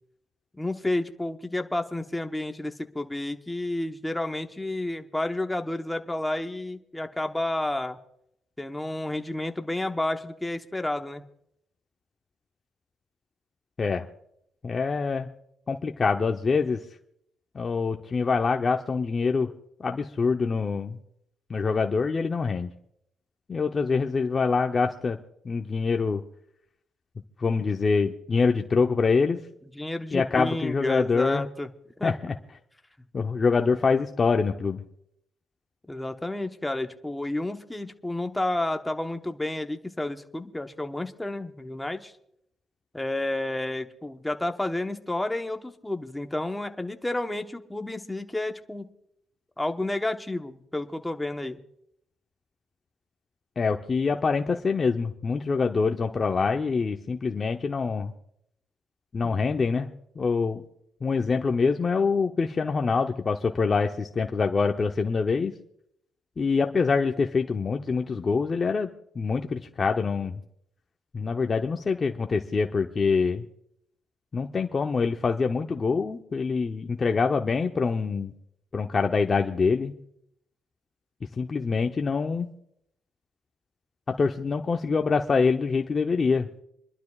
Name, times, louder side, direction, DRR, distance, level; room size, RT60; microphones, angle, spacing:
voice 1, 0.6-8.0 8.6-11.2 27.6-27.7 29.7-31.7 32.0-32.1 35.9-42.1 42.9-48.9 49.6-51.6 59.2-59.3, left 1 dB, 10° left, 6 dB, 1.0 m, -31 dB
voice 2, 14.6-15.3 15.7-16.8 17.5-19.5 19.8-21.0 21.5-22.7 23.5-25.2 25.4-26.2 27.4-29.4 30.1-31.5 32.0-32.3 33.1-34.8 53.6-58.1 59.1-59.9 60.2-60.6 61.0-65.5 66.4-68.9 69.1-70.4 71.1-73.4 74.3-78.3 78.7-79.9 81.3-82.5 84.1-86.6, left 4 dB, 35° left, 4 dB, 0.7 m, -25 dB
28.0 x 12.0 x 2.4 m, 0.74 s
cardioid pair, 90°, 0 cm